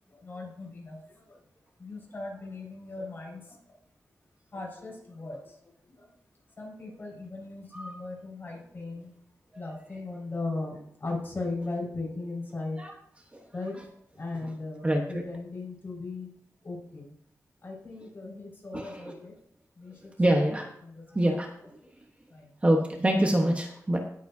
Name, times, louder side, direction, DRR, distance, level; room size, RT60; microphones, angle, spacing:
voice 1, 0.1-1.0 1.3-1.4 1.8-3.5 4.5-5.5 5.9-6.1 6.6-9.1 9.5-12.8 13.5-13.7 14.2-16.3 16.6-17.1 17.6-19.3 19.8-20.5 20.8-21.0 22.3-22.5, left 3 dB, 35° left, -3 dB, 5.1 m, -38 dB
voice 2, 14.8-15.2 18.7-19.2 20.2-20.7 21.1-21.5 22.6-24.0, right 1 dB, 20° right, 2 dB, 1.2 m, -25 dB
18.5 x 7.9 x 2.7 m, 0.68 s
wide cardioid pair, 135°, 6 cm